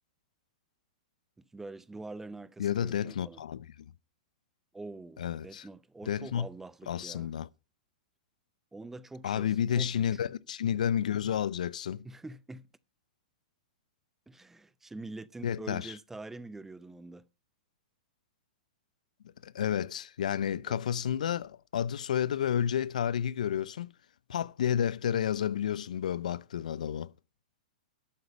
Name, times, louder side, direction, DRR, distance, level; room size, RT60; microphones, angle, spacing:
voice 1, 1.5-3.4 4.7-7.3 8.7-10.2 12.0-12.7 14.3-17.2 20.7-20.8, right 2 dB, 10° right, 0.5 m, -45 dB
voice 2, 2.6-3.9 5.2-5.6 6.1-6.5 6.9-7.5 9.2-12.1 15.4-15.9 19.4-23.9 24.3-27.1, left 9 dB, 70° left, 0.6 m, -31 dB
12.0 x 7.9 x 5.7 m
hypercardioid pair, 105°, 4 cm